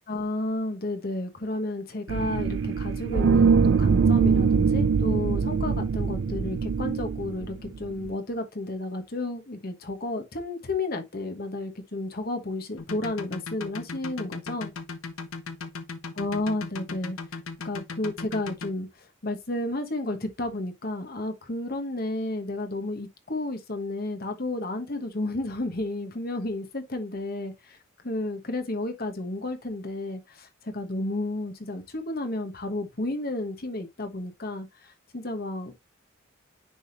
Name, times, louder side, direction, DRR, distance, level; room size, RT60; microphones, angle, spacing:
voice 1, 0.1-14.7 16.2-17.2 17.6-27.8 28.0-35.7, left 2 dB, 45° left, 1.2 m, -32 dB
sound 1, 2.1-8.1, right 5 dB, 60° right, 0.4 m, -23 dB
sound 2, 12.8-18.7, left 4 dB, 90° left, 1.0 m, -37 dB
9.9 x 3.5 x 2.7 m
head